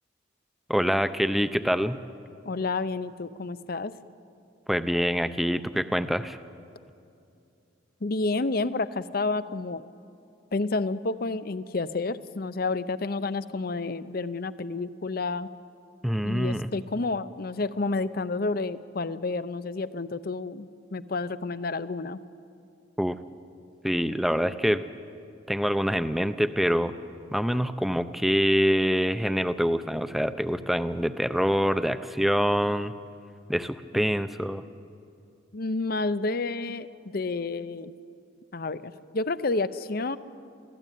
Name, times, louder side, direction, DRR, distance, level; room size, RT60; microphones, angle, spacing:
voice 1, 0.7-2.0 4.7-6.4 16.0-16.7 23.0-23.2 23.8-24.8 25.5-26.9 27.3-32.9 33.5-34.6, equal, ahead, 11 dB, 0.6 m, -25 dB
voice 2, 2.4-3.9 8.0-9.8 10.5-15.5 16.2-22.2 35.5-37.9 38.5-40.2, left 3 dB, 50° left, 14 dB, 0.7 m, -30 dB
25.0 x 16.0 x 9.3 m, 2.6 s
head